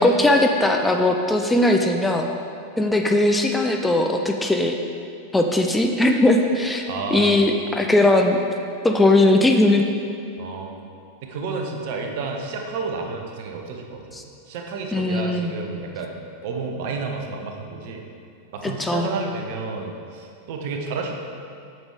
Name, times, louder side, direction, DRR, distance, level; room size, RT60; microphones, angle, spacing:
voice 1, 0.0-2.3 2.8-4.8 5.3-6.8 7.1-8.4 8.8-9.8 14.1-14.2 14.9-15.5 18.8-19.1, left 2 dB, 5° left, 3 dB, 0.6 m, -19 dB
voice 2, 6.9-7.4 10.4-10.8 11.2-14.0 14.5-16.2 16.4-18.0 18.5-21.2, right 4 dB, 50° right, 2 dB, 1.1 m, -31 dB
7.9 x 7.3 x 4.9 m, 2.5 s
figure-of-eight pair, 90°, 0 cm